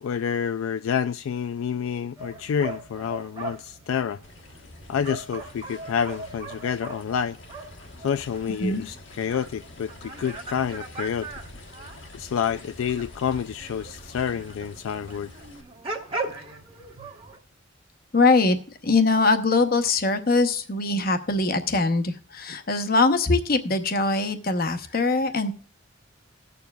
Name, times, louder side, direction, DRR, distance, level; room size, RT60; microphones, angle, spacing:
voice 1, 0.0-4.2 4.9-7.4 8.0-11.3 12.1-15.3, left 7 dB, 80° left, 0.3 m, -28 dB
sound 1, 2.2-17.4, right 3 dB, 25° right, 1.2 m, -40 dB
sound 2, 4.2-15.6, left 2 dB, 60° left, 1.1 m, -47 dB
voice 2, 18.1-18.6 18.8-25.5, left 3 dB, 45° left, 0.9 m, -22 dB
18.5 x 6.9 x 2.3 m
head